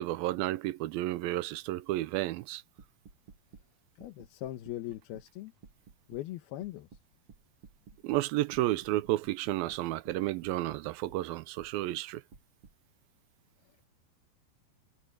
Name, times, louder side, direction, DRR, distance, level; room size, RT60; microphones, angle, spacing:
voice 1, 0.0-2.6 8.0-12.2, right 16 dB, 80° right, 2.3 m, -32 dB
sound 1, 2.8-3.7 4.0-5.3 5.6-6.2 6.6-8.3 8.5-11.2 11.6-11.7 12.3-12.7, right 5 dB, 45° right, 2.6 m, -55 dB
voice 2, 4.0-5.5 6.1-6.9 13.6-13.9, left 14 dB, 85° left, 3.0 m, -40 dB
omnidirectional pair, 4.4 m